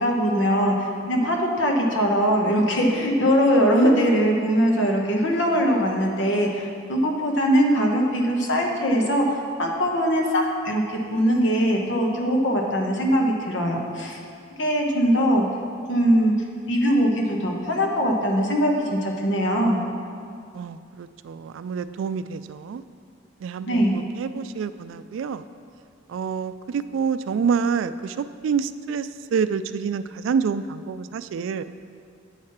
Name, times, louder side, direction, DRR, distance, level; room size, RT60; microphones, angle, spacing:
voice 1, 0.0-14.2 14.6-15.4 15.9-16.3 16.7-19.8 23.7-24.0, equal, 70° left, 1 dB, 1.1 m, -21 dB
voice 2, 20.5-22.8 23.4-25.4 26.1-31.6, right 6 dB, 80° right, 13 dB, 0.3 m, -27 dB
8.7 x 4.8 x 5.8 m, 2.3 s
head